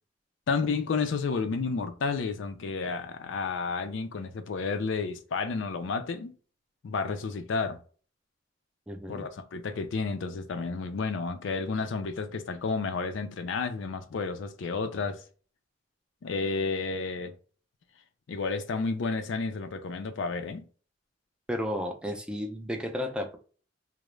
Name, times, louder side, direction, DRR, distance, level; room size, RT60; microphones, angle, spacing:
voice 1, 0.5-6.3 6.8-7.8 9.1-15.2 16.2-17.3 18.3-20.6, left 4 dB, 80° left, 0.4 m, -31 dB
voice 2, 8.9-9.2 21.5-23.4, left 1 dB, 5° right, 0.4 m, -33 dB
2.3 x 2.0 x 3.0 m
head